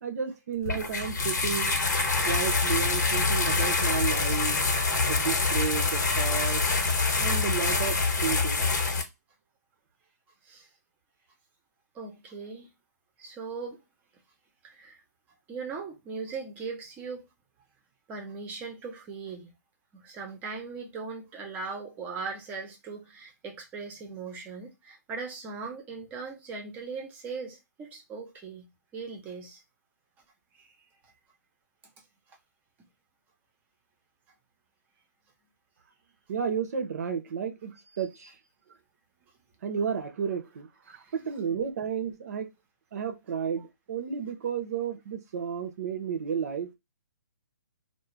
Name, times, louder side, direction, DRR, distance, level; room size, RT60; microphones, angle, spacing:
voice 1, 0.0-1.8 2.2-4.6 5.1-6.6 7.2-8.6 36.3-38.4 39.6-42.5 42.9-46.7, right 7 dB, 55° right, 0.6 m, -32 dB
sound 1, 0.6-9.0, left 3 dB, 70° left, 1.0 m, -26 dB
voice 2, 11.9-12.7 13.2-13.8 14.6-15.0 15.5-17.3 18.1-19.5 19.9-28.7 28.9-29.6 30.5-30.7 38.2-38.3 40.9-41.1, right 4 dB, 15° right, 0.6 m, -39 dB
2.4 x 2.1 x 3.0 m
hypercardioid pair, 150°, 10 cm